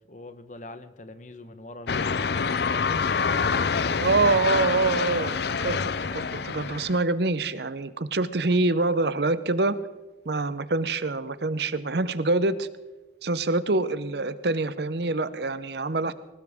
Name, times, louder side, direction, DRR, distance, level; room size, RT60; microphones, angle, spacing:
voice 1, 0.1-4.3, left 2 dB, 40° left, 10 dB, 1.1 m, -43 dB
sound 1, 1.9-7.0, left 5 dB, 65° left, 0.6 m, -26 dB
voice 2, 4.0-9.8 10.2-12.7 13.2-16.1, right 3 dB, 65° right, 14 dB, 0.8 m, -25 dB
20.5 x 19.0 x 3.6 m, 1.1 s
head